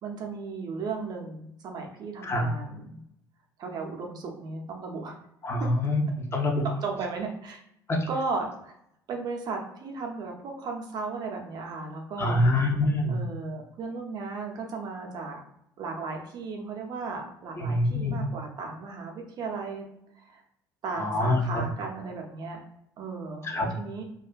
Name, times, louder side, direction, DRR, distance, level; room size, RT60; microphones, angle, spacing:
voice 1, 0.0-3.0 3.6-5.2 5.6-5.7 6.6-7.6 8.1-8.7 9.1-12.4 13.1-15.4 15.8-19.9 20.2-20.4 20.8-22.6 23.0-24.0, right 4 dB, 40° right, 2 dB, 0.6 m, -35 dB
voice 2, 5.4-6.0 6.3-6.6 7.9-8.1 12.2-13.2 17.6-18.2 21.0-21.4 23.4-23.7, left 1 dB, 25° left, 1 dB, 0.6 m, -25 dB
2.3 x 2.3 x 2.3 m, 0.76 s
figure-of-eight pair, 60°, 11 cm